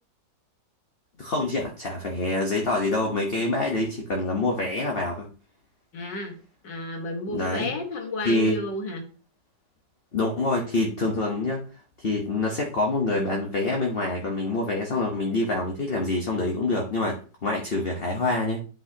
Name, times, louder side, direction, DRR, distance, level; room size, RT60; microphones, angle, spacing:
voice 1, 1.2-5.3 7.3-7.7 8.2-8.6 10.1-11.7 12.0-18.6, left 2 dB, 40° left, 0 dB, 1.1 m, -26 dB
voice 2, 5.9-6.4 6.6-9.0, left 2 dB, 80° left, 3 dB, 2.2 m, -32 dB
10.0 x 5.6 x 2.9 m, 0.39 s
omnidirectional pair, 1.9 m